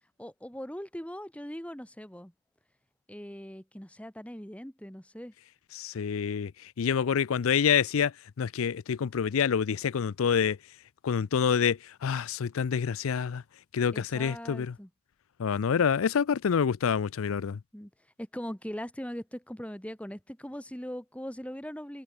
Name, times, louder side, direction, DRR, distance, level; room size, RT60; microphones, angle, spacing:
voice 1, 0.2-2.3 3.1-5.3 13.9-14.9 17.7-17.9 18.2-22.0, equal, 5° left, 1.7 m, -40 dB
voice 2, 5.7-10.6 11.0-13.4 13.7-14.7 15.4-17.6, left 7 dB, 80° left, 0.4 m, -27 dB
head